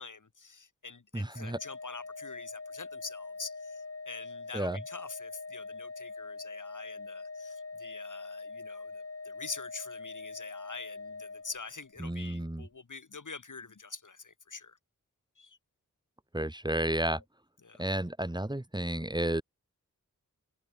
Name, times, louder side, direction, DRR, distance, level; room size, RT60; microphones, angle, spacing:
voice 1, 0.0-14.8 15.4-15.6 17.1-17.2 17.6-17.8, left 4 dB, 65° left, 7.7 m, -45 dB
voice 2, 1.1-1.6 4.5-4.8 12.0-12.7 16.3-17.2 17.8-19.4, right 1 dB, 15° right, 2.0 m, -32 dB
Organ, 1.4-12.0, left 3 dB, 45° left, 4.2 m, -43 dB
wide cardioid pair, 85°, 32 cm